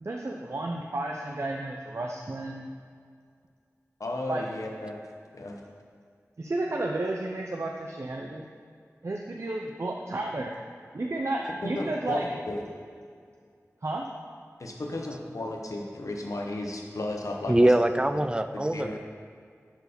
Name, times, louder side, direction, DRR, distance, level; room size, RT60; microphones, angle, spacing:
voice 1, 0.0-2.7 4.3-4.4 6.4-8.5 9.0-10.5 10.9-12.3 13.8-14.1, right 2 dB, 60° right, 0 dB, 0.6 m, -32 dB
voice 2, 4.0-5.0 5.3-5.6 11.6-12.6 14.6-17.7 18.5-19.0, left 2 dB, 85° left, 1 dB, 1.0 m, -34 dB
Bell, 11.4-13.1, right 1 dB, ahead, 0.8 m, -46 dB
voice 3, 17.5-19.0, right 1 dB, 15° right, 9 dB, 0.4 m, -23 dB
10.5 x 4.7 x 5.2 m, 2.2 s
wide cardioid pair, 60°, 6 cm